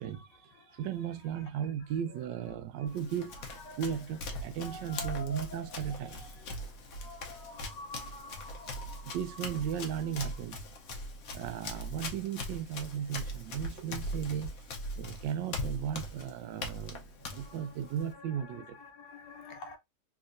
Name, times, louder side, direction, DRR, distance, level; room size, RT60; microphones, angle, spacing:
voice 1, 0.0-1.5 1.8-4.1 4.6-9.8 10.2-10.4 17.1-19.8, left 3 dB, 90° left, 1.6 m, -49 dB
voice 2, 0.8-3.3 3.8-6.2 9.1-10.6 11.3-14.5 15.0-17.0 17.3-18.8, right 9 dB, 90° right, 1.3 m, -36 dB
Run, 2.9-18.1, left 1 dB, 60° left, 1.1 m, -41 dB
3.5 x 3.0 x 2.5 m
omnidirectional pair, 1.9 m